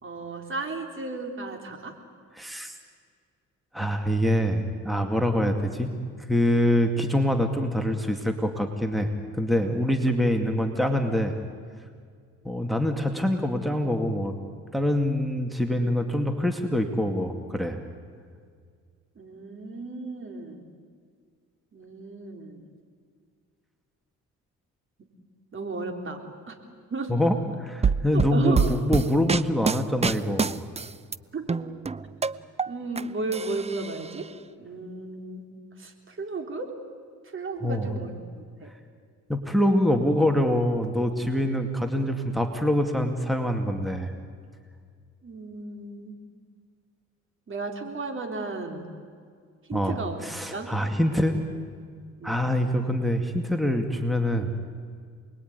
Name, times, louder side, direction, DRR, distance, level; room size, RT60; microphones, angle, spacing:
voice 1, 0.0-2.0 19.2-20.7 21.7-22.7 25.5-26.5 26.9-27.1 28.1-28.7 31.3-31.6 32.7-34.3 34.6-35.5 35.8-36.7 37.2-38.7 45.2-46.2 47.5-48.9 49.7-50.2 50.5-50.7 52.2-52.4, right 3 dB, 40° right, 4 dB, 3.9 m, -34 dB
voice 2, 2.4-2.7 3.7-5.9 6.3-9.1 9.4-11.4 12.4-14.3 14.7-17.8 27.1-30.7 37.6-37.9 39.3-44.1 49.7-51.4 52.2-54.7, equal, ahead, 5 dB, 2.3 m, -25 dB
sound 1, 27.8-31.2 31.5-33.0 33.3-34.2, right 5 dB, 20° right, 0.7 m, -26 dB
28.5 x 21.0 x 9.6 m, 2.1 s
cardioid pair, 90°, 30 cm